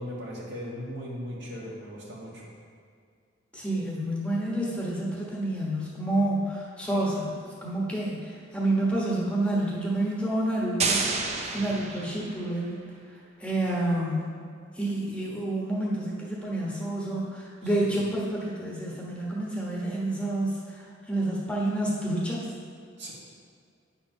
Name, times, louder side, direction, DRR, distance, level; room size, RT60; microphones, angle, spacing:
voice 1, 0.0-2.5 11.4-11.8 17.8-18.0 23.0-23.1, equal, 60° right, -5 dB, 1.9 m, -38 dB
voice 2, 3.5-14.3 14.7-22.5, right 1 dB, 5° left, -5 dB, 1.2 m, -29 dB
sound 1, 10.8-12.6, right 4 dB, 35° right, 0.6 m, -29 dB
9.0 x 4.4 x 5.8 m, 2.2 s
head